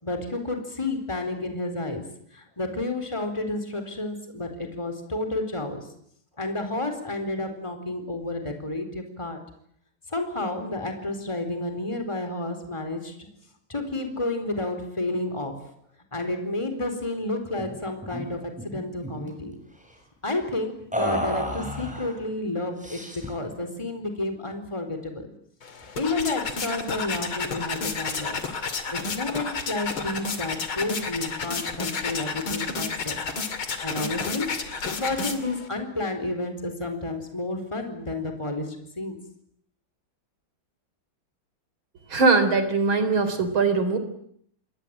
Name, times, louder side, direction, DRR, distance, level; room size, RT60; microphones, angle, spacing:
voice 1, 0.0-2.0 2.3-5.9 6.4-9.4 10.1-13.2 13.7-15.6 16.1-19.6 20.2-25.3 25.9-28.4 28.9-33.2 33.8-34.5 35.0-39.2, left 2 dB, 15° left, 7 dB, 4.4 m, -31 dB
sound 1, 17.6-17.8 18.0-18.2 18.6-19.3 20.9-22.2 22.8-23.4, equal, 5° right, 6.7 m, -31 dB
sound 2, 25.6-35.7, left 4 dB, 90° left, 3.4 m, -31 dB
voice 2, 42.1-44.0, right 4 dB, 80° right, 11 dB, 4.5 m, -21 dB
28.5 x 22.5 x 9.0 m, 0.68 s
omnidirectional pair, 2.2 m